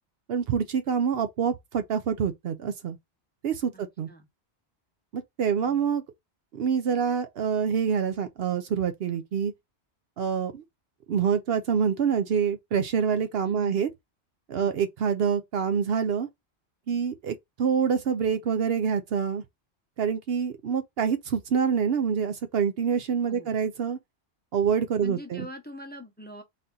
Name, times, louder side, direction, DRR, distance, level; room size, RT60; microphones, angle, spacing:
voice 1, 0.3-3.0 3.4-4.1 5.1-6.0 6.5-9.5 10.2-10.6 11.1-13.9 14.5-16.3 16.9-19.4 20.0-24.0 24.5-25.5, right 7 dB, 65° right, 0.8 m, -26 dB
voice 2, 3.7-4.3 5.6-5.9 13.5-13.8 14.6-14.8 23.3-23.5 25.0-26.4, left 1 dB, 10° left, 0.7 m, -43 dB
4.1 x 2.7 x 3.7 m
omnidirectional pair, 1.1 m